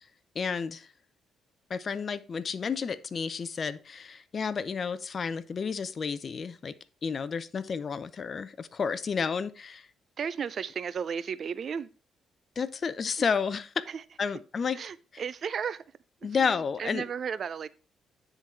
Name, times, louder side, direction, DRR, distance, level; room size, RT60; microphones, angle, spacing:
voice 1, 0.3-0.9 1.7-6.7 7.0-9.9 12.6-13.7 14.2-14.8 15.1-15.2 16.2-17.0, left 6 dB, 45° left, 0.5 m, -31 dB
voice 2, 10.2-11.9 13.9-14.0 14.7-15.8 16.4-17.7, right 7 dB, 50° right, 0.4 m, -34 dB
9.7 x 3.9 x 4.4 m
cardioid pair, 90°, 0 cm